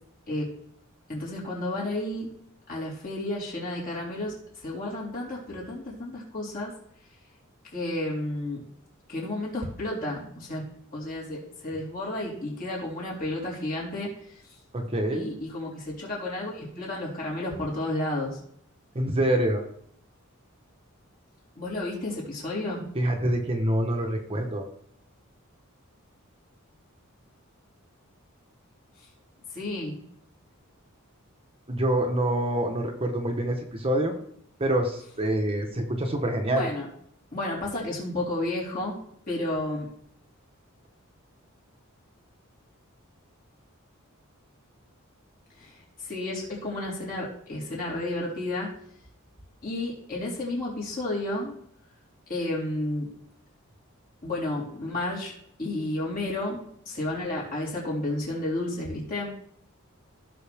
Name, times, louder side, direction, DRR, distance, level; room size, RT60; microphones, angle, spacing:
voice 1, 1.1-2.3 2.7-6.7 7.7-8.6 9.1-10.6 10.9-14.1 15.1-18.4 21.6-22.9 29.5-30.0 36.5-36.9 37.3-39.0 39.3-39.9 45.6-45.7 46.0-48.7 49.6-51.5 52.3-53.1 54.2-55.3 55.6-59.3, left 1 dB, 40° left, -5 dB, 4.2 m, -32 dB
voice 2, 14.7-15.3 18.9-19.6 22.9-24.7 31.7-34.1 34.6-36.7, right 1 dB, 25° right, 3 dB, 1.2 m, -26 dB
16.0 x 6.3 x 3.6 m, 0.67 s
head